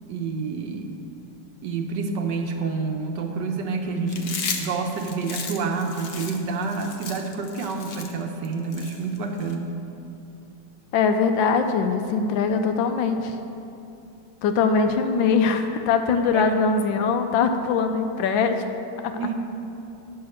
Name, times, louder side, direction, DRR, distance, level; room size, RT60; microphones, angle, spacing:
voice 1, 0.1-0.9 1.6-9.7 15.1-15.2 16.3-16.5 19.2-19.3, right 4 dB, 70° right, 3 dB, 1.4 m, -28 dB
Chewing mastication, 4.1-9.5, left 5 dB, 60° left, 0.6 m, -35 dB
voice 2, 10.9-13.4 14.4-18.6 19.0-19.2, left 5 dB, 85° left, 7 dB, 1.4 m, -22 dB
9.5 x 5.7 x 6.6 m, 2.7 s
omnidirectional pair, 2.1 m